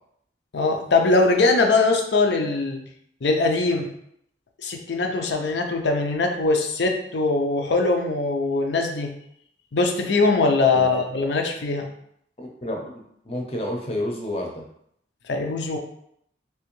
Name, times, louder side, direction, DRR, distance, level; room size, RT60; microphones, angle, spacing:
voice 1, 0.5-2.8 3.2-3.9 4.6-9.1 9.7-11.9 15.3-15.8, left 3 dB, 70° left, 3 dB, 0.6 m, -21 dB
voice 2, 12.4-14.7, left 1 dB, 35° left, 0 dB, 0.7 m, -30 dB
3.4 x 3.0 x 3.1 m, 0.72 s
head